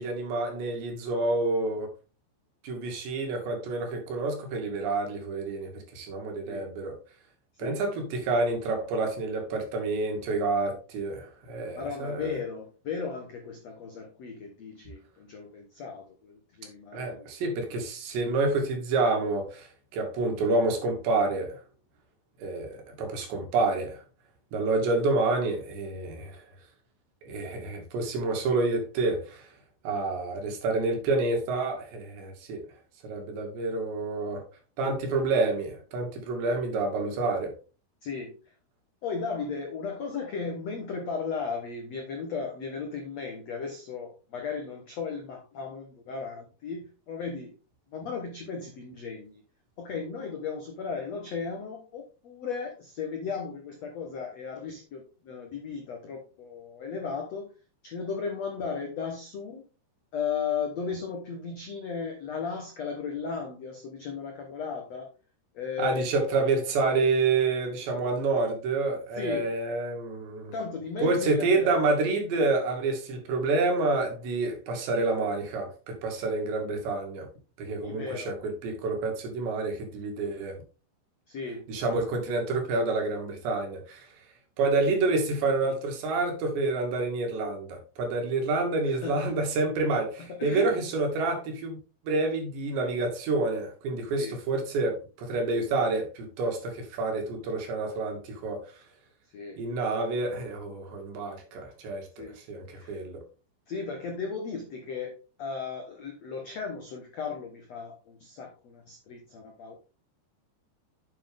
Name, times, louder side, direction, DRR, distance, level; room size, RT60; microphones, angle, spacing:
voice 1, 0.0-1.9 2.6-6.9 7.6-12.3 16.9-19.7 19.9-21.6 22.4-24.0 24.5-26.4 27.2-29.5 29.8-32.6 33.0-34.4 34.8-37.5 65.8-70.5 71.0-77.3 77.6-80.6 81.7-84.1 84.6-91.8 92.0-98.7 99.6-103.2, right 3 dB, 75° right, 4.5 m, -28 dB
voice 2, 11.7-17.3 38.0-38.4 39.0-47.5 47.9-49.4 49.8-57.5 57.8-59.7 60.1-65.1 65.5-66.0 69.2-69.5 70.5-71.8 77.8-78.4 81.3-81.7 88.8-89.2 89.8-89.9 90.2-90.8 94.1-94.4 99.3-99.6 102.2-102.4 102.7-103.0 103.7-109.8, left 5 dB, 70° left, 1.5 m, -36 dB
8.4 x 7.7 x 3.6 m
omnidirectional pair, 5.1 m